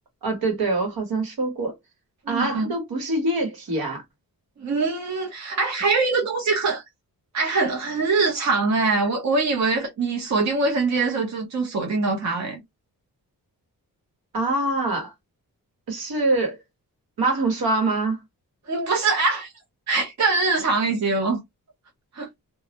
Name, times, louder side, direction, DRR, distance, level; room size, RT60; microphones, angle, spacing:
voice 1, 0.2-1.7 2.3-4.0 14.3-15.1 15.9-16.6 17.2-18.2, right 2 dB, 80° right, 1.2 m, -24 dB
voice 2, 2.3-2.7 4.6-6.8 7.3-12.6 18.7-19.5 19.9-21.4 22.1-22.3, right 3 dB, 50° right, 0.8 m, -23 dB
2.3 x 2.0 x 2.8 m
wide cardioid pair, 115°, 36 cm